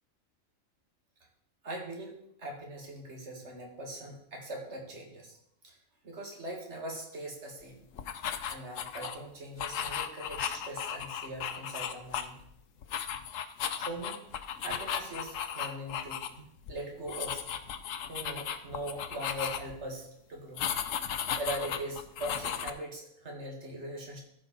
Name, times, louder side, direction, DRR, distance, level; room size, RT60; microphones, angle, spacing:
voice 1, 1.6-2.1 2.4-5.4 5.6-5.8 6.0-7.8 8.5-12.4 13.7-14.2 14.6-16.3 16.7-17.7 18.0-24.2, right 1 dB, 55° right, 1 dB, 2.2 m, -41 dB
sound 1, 8.0-9.2 9.6-12.5 12.8-16.3 16.6-16.7 17.1-19.8 20.6-22.7, left 8 dB, 75° left, 1.0 m, -35 dB
14.5 x 5.1 x 4.1 m, 0.75 s
omnidirectional pair, 1.4 m